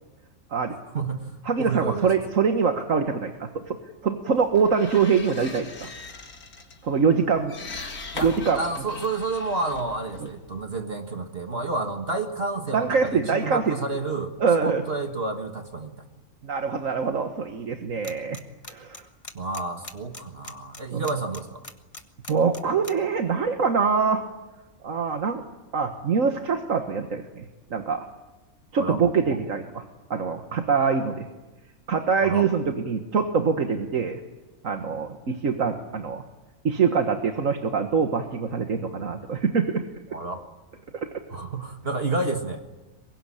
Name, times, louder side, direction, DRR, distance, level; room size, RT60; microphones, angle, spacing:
voice 1, 0.9-2.1 8.1-8.3 8.6-14.3 14.6-16.0 19.3-21.6 28.8-29.4 32.2-32.5 40.1-40.4 41.3-42.6, right 3 dB, 45° right, 5 dB, 1.9 m, -30 dB
voice 2, 1.5-3.8 4.0-5.9 6.8-7.5 8.2-8.6 10.2-10.3 12.7-13.8 14.4-14.8 16.4-18.4 18.7-19.0 20.9-21.0 22.3-24.2 24.8-25.4 25.7-27.4 27.7-28.1 28.7-29.8 30.1-31.3 31.9-34.2 34.6-36.2 36.6-39.8 40.9-41.1, right 5 dB, 65° right, 5 dB, 1.8 m, -24 dB
sound 1, 4.4-10.8, left 3 dB, 85° left, 2.7 m, -40 dB
sound 2, 18.0-18.4 18.6-22.9, left 2 dB, 25° left, 1.6 m, -39 dB
24.5 x 21.5 x 10.0 m, 1.1 s
omnidirectional pair, 1.5 m